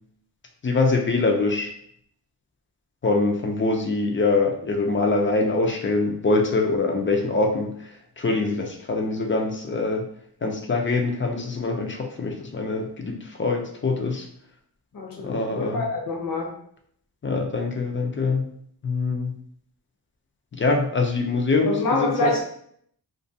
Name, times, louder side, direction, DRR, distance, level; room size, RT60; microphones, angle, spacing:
voice 1, 0.6-1.7 3.0-10.1 10.4-14.3 15.2-15.9 17.2-18.5 18.8-19.3 20.5-22.4, left 3 dB, 30° left, 2 dB, 0.4 m, -24 dB
voice 2, 14.9-16.5 21.7-22.4, left 2 dB, 55° left, 0 dB, 0.7 m, -26 dB
2.4 x 2.3 x 2.6 m, 0.66 s
wide cardioid pair, 100°, 40 cm